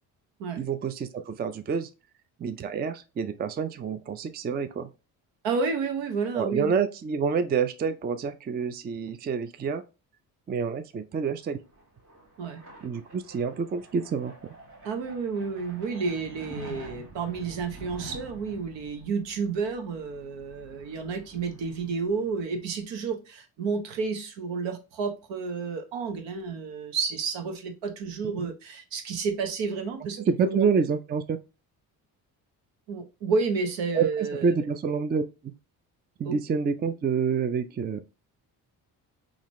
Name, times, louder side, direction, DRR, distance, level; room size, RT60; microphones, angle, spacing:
voice 1, 0.6-1.9 2.4-4.9 6.3-9.8 10.5-11.6 12.8-14.5 28.4-28.5 30.2-31.4 33.9-35.5 36.2-38.0, right 6 dB, 25° right, 0.4 m, -28 dB
voice 2, 5.4-6.7 12.4-12.6 14.8-30.7 32.9-34.6 36.2-36.4, right 4 dB, 75° right, 0.9 m, -31 dB
sound 1, 11.4-22.7, equal, 45° right, 1.5 m, -47 dB
3.8 x 2.4 x 3.0 m
supercardioid pair, 65°, 44 cm